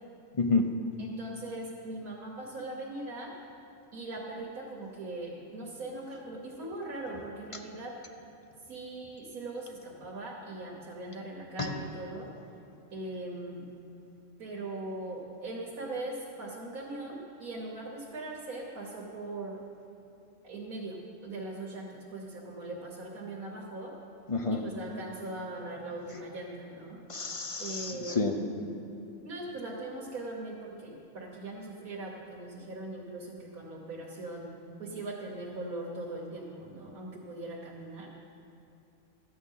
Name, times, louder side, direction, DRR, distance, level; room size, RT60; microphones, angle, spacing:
voice 1, 0.4-0.7 11.6-11.7 24.3-24.6 27.1-28.3, left 3 dB, 40° left, 4 dB, 0.4 m, -29 dB
voice 2, 1.0-3.3 3.9-7.9 8.7-12.3 12.9-13.7 14.4-19.6 20.4-23.9 24.5-27.0 27.6-28.4 29.2-34.5 34.8-38.1, right 2 dB, 75° right, -3 dB, 1.7 m, -40 dB
13.5 x 8.6 x 5.5 m, 2.7 s
omnidirectional pair, 1.5 m